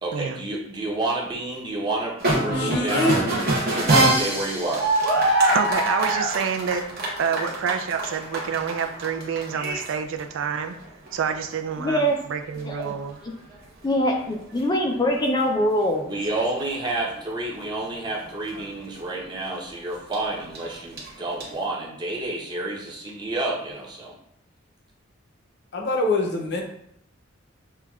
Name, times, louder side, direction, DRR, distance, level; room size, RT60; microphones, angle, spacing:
voice 1, 0.0-4.9 16.0-24.2, right 2 dB, 20° right, -3 dB, 0.7 m, -30 dB
sound 1, 2.2-9.9 10.2-10.3 10.8-11.5 11.8-11.9 12.3-12.4 12.6-12.9 14.6-14.7 15.0-15.4 16.0-17.2 18.3-18.6 19.0-19.1 20.1-21.4, right 1 dB, 50° right, 0.9 m, -24 dB
voice 2, 2.5-3.2 25.7-26.6, left 2 dB, 55° left, 0 dB, 0.6 m, -24 dB
voice 3, 5.5-10.7 11.1-13.2, right 6 dB, 70° right, 7 dB, 0.3 m, -28 dB
voice 4, 11.8-12.2 12.6-12.9 13.2-13.3 13.8-16.1, equal, 20° left, 1 dB, 0.3 m, -23 dB
5.7 x 2.2 x 2.3 m, 0.72 s
head